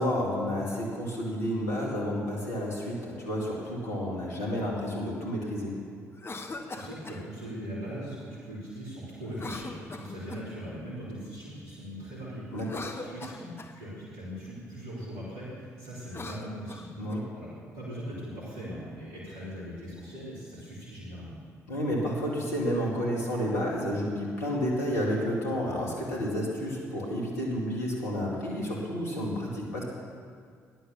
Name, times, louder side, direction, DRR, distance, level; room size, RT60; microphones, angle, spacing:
voice 1, 0.0-5.7 12.5-12.8 17.0-17.2 21.7-29.8, equal, 85° left, -3 dB, 2.3 m, -30 dB
Cough, 6.1-7.2 9.3-10.6 12.5-13.8 16.0-17.2, left 3 dB, 30° left, 1.2 m, -41 dB
voice 2, 6.5-12.5 12.8-17.0 17.3-21.4, equal, 75° right, -10 dB, 3.8 m, -40 dB
15.0 x 10.5 x 7.0 m, 2.1 s
figure-of-eight pair, 45°, 8 cm